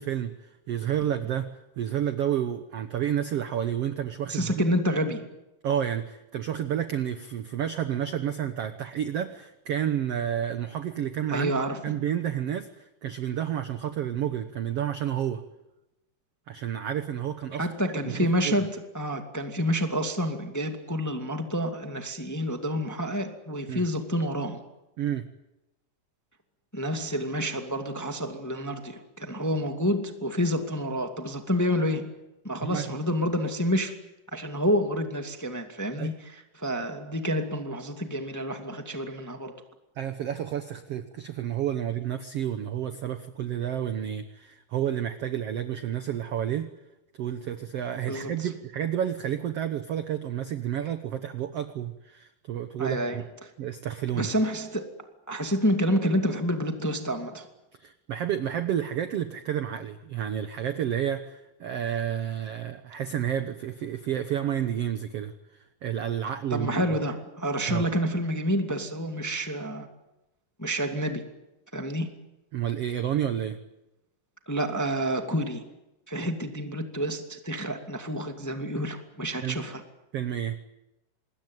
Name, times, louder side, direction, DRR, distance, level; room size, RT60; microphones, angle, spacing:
voice 1, 0.0-4.6 5.6-11.6 11.8-15.4 16.5-17.7 18.0-18.5 23.7-23.8 25.0-25.3 32.6-32.9 35.9-36.1 40.0-46.7 47.2-53.2 53.6-54.3 57.8-65.3 65.8-66.7 67.7-67.9 72.5-73.6 79.4-79.6 80.1-80.6, right 10 dB, 75° right, 9 dB, 1.4 m, -30 dB
voice 2, 4.3-5.3 11.3-11.8 17.6-24.6 26.7-32.1 32.4-34.0 34.3-39.5 48.1-48.5 52.8-53.5 54.1-54.9 55.3-57.5 66.5-69.9 70.6-71.2 71.7-72.1 74.4-75.6 76.1-79.8, equal, 5° left, 5 dB, 1.3 m, -28 dB
26.0 x 21.0 x 9.3 m, 0.94 s
omnidirectional pair, 4.4 m